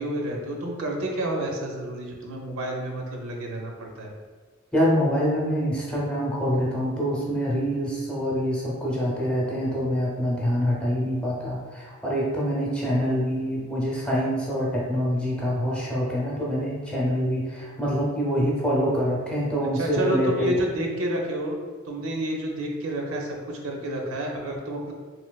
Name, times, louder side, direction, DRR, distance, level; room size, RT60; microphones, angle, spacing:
voice 1, 0.0-4.1 19.7-21.6 21.9-24.9, right 1 dB, 80° right, 1 dB, 0.5 m, -30 dB
voice 2, 4.7-20.6, equal, 5° left, -5 dB, 0.6 m, -25 dB
3.1 x 2.8 x 2.3 m, 1.5 s
head